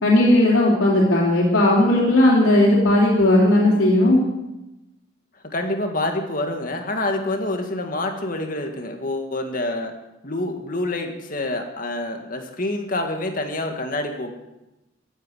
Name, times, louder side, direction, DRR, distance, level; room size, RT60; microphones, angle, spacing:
voice 1, 0.0-4.2, left 1 dB, 85° left, -6 dB, 3.2 m, -16 dB
voice 2, 5.4-9.9 10.2-14.3, left 2 dB, 45° left, 4 dB, 2.0 m, -27 dB
15.0 x 8.7 x 9.2 m, 0.97 s
head